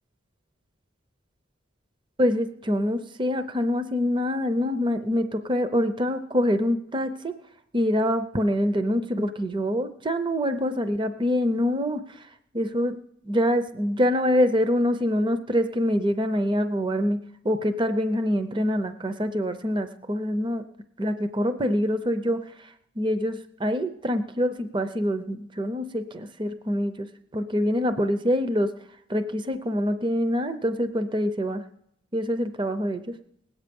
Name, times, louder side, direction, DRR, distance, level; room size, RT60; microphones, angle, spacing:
voice 1, 2.2-7.3 7.7-12.3 12.5-13.0 13.2-17.2 17.4-20.6 21.0-27.1 27.3-28.7 29.1-31.6 32.1-33.0, equal, 25° right, 9 dB, 0.6 m, -25 dB
19.5 x 8.7 x 5.3 m, 0.75 s
head